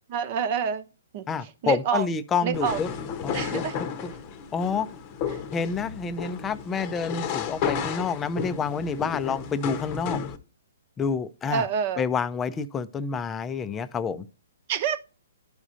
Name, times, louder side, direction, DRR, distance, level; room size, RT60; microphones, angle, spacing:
voice 1, 0.1-0.8 1.1-1.2 1.6-2.1 2.4-2.8 3.3-3.7 5.3-5.4 11.5-12.0 14.7-15.0, right 7 dB, 45° right, 0.9 m, -27 dB
voice 2, 1.3-2.9 3.2-4.1 4.5-4.9 5.5-10.2 11.0-11.7 12.0-14.3, left 5 dB, 15° left, 0.5 m, -28 dB
sound 1, 2.5-10.4, left 7 dB, 40° left, 0.9 m, -33 dB
12.5 x 4.9 x 2.6 m
hypercardioid pair, 130°, 0 cm